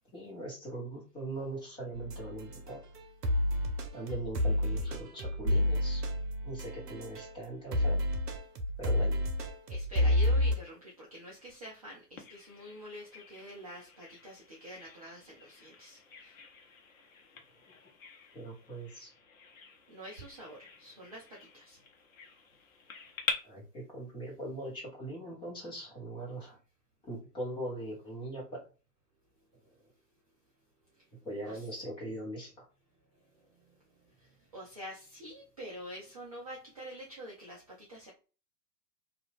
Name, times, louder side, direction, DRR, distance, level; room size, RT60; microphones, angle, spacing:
voice 1, 0.1-2.8 3.9-6.0 6.4-8.0 8.8-9.2 18.3-19.1 23.4-26.6 27.1-28.6 31.2-32.6, right 1 dB, 10° left, 0.9 m, -41 dB
sound 1, 1.9-7.4 7.7-10.6, left 1 dB, 65° right, 0.8 m, -30 dB
voice 2, 9.4-16.5 19.9-21.8 29.8-30.0 30.8-31.2 31.4-31.8 32.9-38.1, equal, 25° right, 0.4 m, -47 dB
Bird vocalization bird call bird song, 12.2-23.3, left 5 dB, 50° left, 0.8 m, -45 dB
2.9 x 2.4 x 2.3 m
figure-of-eight pair, 115°, 50 cm